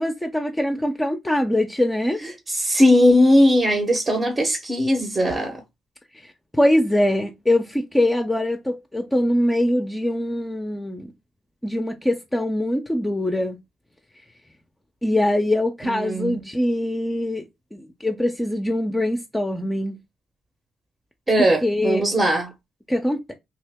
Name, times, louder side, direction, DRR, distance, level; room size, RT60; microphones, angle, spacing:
voice 1, 0.0-2.2 6.2-11.1 11.6-13.6 15.0-17.5 17.7-20.0 21.6-22.0 22.9-23.3, left 1 dB, 10° left, 0.5 m, -23 dB
voice 2, 2.2-5.6 15.8-16.4 21.3-22.5, equal, 25° right, 0.8 m, -19 dB
2.9 x 2.8 x 3.4 m
cardioid pair, 90°, 0 cm